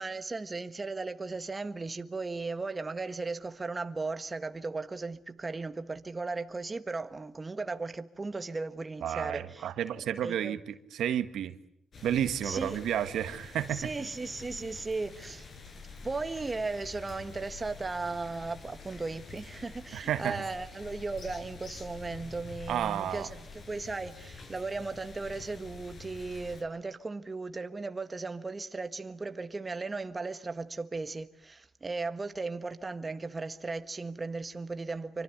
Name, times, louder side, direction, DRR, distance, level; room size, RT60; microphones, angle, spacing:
voice 1, 0.0-9.7 10.0-10.6 12.4-12.8 13.7-15.5 16.0-35.2, right 3 dB, 25° right, 1.5 m, -36 dB
voice 2, 9.0-11.6 12.0-13.9 19.9-20.4 22.7-23.3, right 10 dB, 75° right, 1.7 m, -31 dB
sound 1, 11.9-26.6, left 4 dB, 50° left, 6.9 m, -47 dB
27.5 x 24.5 x 8.1 m
cardioid pair, 90°, 0 cm